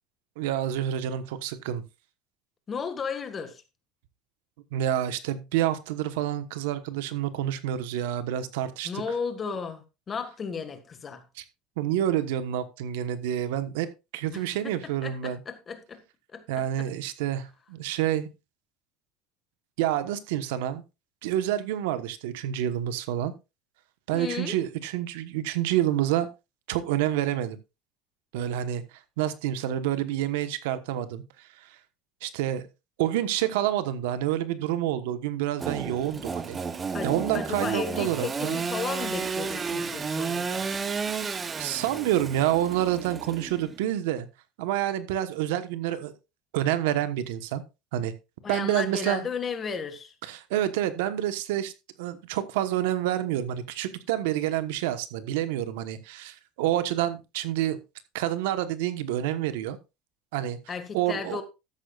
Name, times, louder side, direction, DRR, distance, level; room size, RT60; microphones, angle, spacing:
voice 1, 0.4-1.8 4.7-8.9 11.4-11.5 11.8-13.9 14.1-15.4 16.5-18.3 19.8-20.8 21.2-23.3 24.1-26.3 26.7-27.6 28.3-28.8 29.2-31.8 32.2-32.7 33.0-36.6 37.0-38.6 41.6-44.3 44.6-46.1 46.5-47.6 47.9-48.1 48.5-49.2 50.2-51.7 52.0-57.8 58.1-59.8 60.3-60.6 60.9-61.4, right 12 dB, 85° right, 1.2 m, -28 dB
voice 2, 2.7-3.6 8.8-11.2 14.3-16.0 16.3-16.9 24.1-24.6 36.9-40.7 48.4-50.2 60.7-61.4, left 6 dB, 25° left, 1.8 m, -34 dB
Engine / Sawing, 35.6-43.8, right 5 dB, 20° right, 0.8 m, -32 dB
13.0 x 10.5 x 2.4 m
cardioid pair, 135°, 0 cm